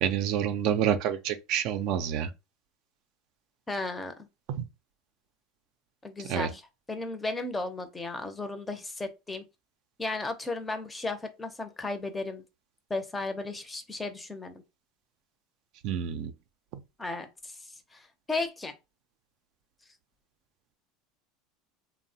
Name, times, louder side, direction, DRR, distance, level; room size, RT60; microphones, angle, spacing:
voice 1, 0.0-2.3 4.5-4.7 6.3-6.5 15.8-16.3, right 9 dB, 60° right, 0.4 m, -28 dB
voice 2, 3.7-4.1 6.0-6.6 6.9-9.4 10.0-12.4 12.9-14.6 17.0-17.5 17.9-18.7, left 2 dB, 15° left, 0.5 m, -34 dB
3.0 x 2.0 x 2.7 m
supercardioid pair, 110°, 0 cm